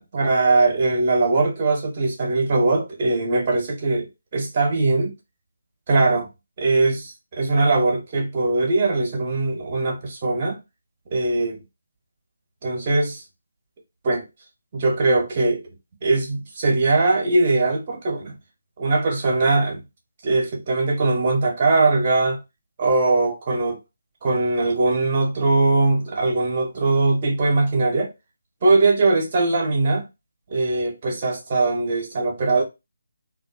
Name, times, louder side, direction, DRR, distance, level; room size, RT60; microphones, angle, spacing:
voice 1, 0.0-5.1 5.9-6.3 6.6-10.6 11.1-11.6 12.6-13.2 14.0-14.2 14.7-15.6 16.0-18.3 18.8-19.8 20.2-22.4 22.8-23.8 24.2-28.1 28.6-30.0 30.5-32.6, right 3 dB, 35° right, 1.0 m, -21 dB
2.5 x 2.4 x 2.5 m
figure-of-eight pair, 150°, 0 cm